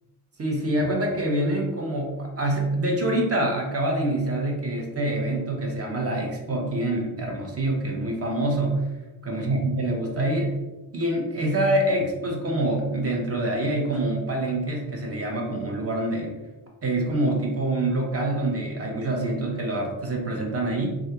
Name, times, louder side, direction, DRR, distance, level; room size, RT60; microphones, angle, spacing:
voice 1, 0.4-8.8 9.2-10.6 10.9-16.3 16.8-21.0, right 1 dB, 30° right, 1 dB, 0.9 m, -26 dB
3.2 x 2.4 x 2.8 m, 1.1 s
supercardioid pair, 55°, 44 cm